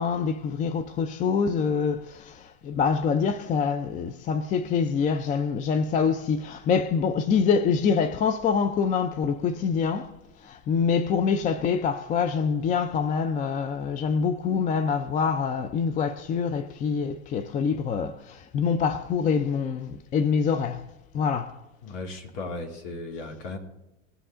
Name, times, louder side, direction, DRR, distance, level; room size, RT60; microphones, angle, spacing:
voice 1, 0.0-10.1 10.4-20.9 21.1-21.6, left 6 dB, 20° left, 0.4 m, -25 dB
voice 2, 21.8-23.6, left 2 dB, 50° left, 2.7 m, -36 dB
19.0 x 7.7 x 3.7 m
hypercardioid pair, 105°, 39 cm